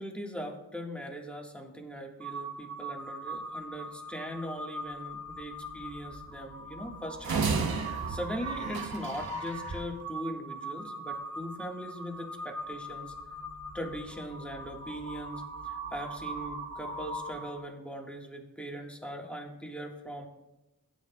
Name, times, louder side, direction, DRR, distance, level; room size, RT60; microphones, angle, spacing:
voice 1, 0.0-7.8 8.1-13.1 13.7-20.3, equal, 5° left, 0 dB, 1.7 m, -40 dB
Crow, 2.2-17.7, right 1 dB, 45° right, 1.1 m, -40 dB
sound 1, 7.2-9.5, right 5 dB, 80° right, 0.8 m, -32 dB
17.0 x 9.5 x 2.3 m, 0.99 s
wide cardioid pair, 75°, 36 cm